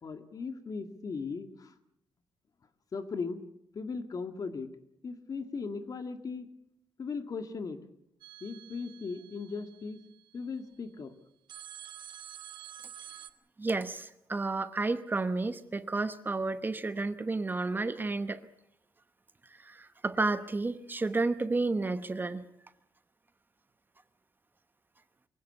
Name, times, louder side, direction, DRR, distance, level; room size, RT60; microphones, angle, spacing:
voice 1, 0.0-1.7 2.9-3.4 3.7-4.7 5.0-6.5 7.0-7.8 8.4-10.0 10.3-11.1, left 4 dB, 45° left, 1.9 m, -38 dB
sound 1, 8.2-10.5 11.5-13.3, right 10 dB, 70° right, 1.2 m, -49 dB
voice 2, 13.6-18.5 19.6-22.4, right 3 dB, 25° right, 0.9 m, -31 dB
24.0 x 16.5 x 8.1 m
cardioid pair, 115°, 9 cm